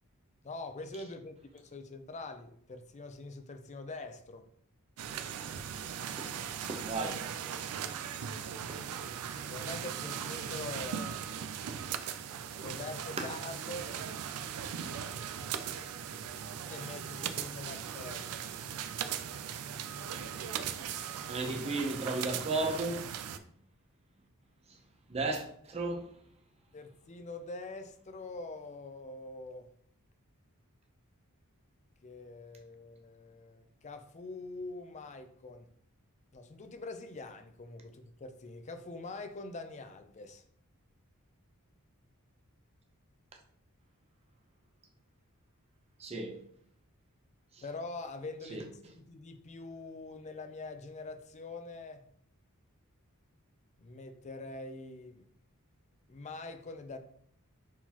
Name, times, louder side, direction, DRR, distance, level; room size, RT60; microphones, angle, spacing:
voice 1, 0.4-4.5 9.5-11.3 12.5-14.0 16.7-18.2 26.7-29.7 32.0-35.7 36.3-40.4 47.6-52.0 53.8-55.3 56.1-57.0, left 2 dB, 30° left, 0.4 m, -44 dB
sound 1, 5.0-23.4, right 8 dB, 80° right, 0.4 m, -39 dB
voice 2, 6.7-7.2 8.7-8.8 13.2-13.3 17.6-17.8 21.2-23.3 25.1-26.1 46.0-46.4 47.5-47.6 48.5-48.6, right 2 dB, 30° right, 0.7 m, -34 dB
4.5 x 3.7 x 2.9 m
head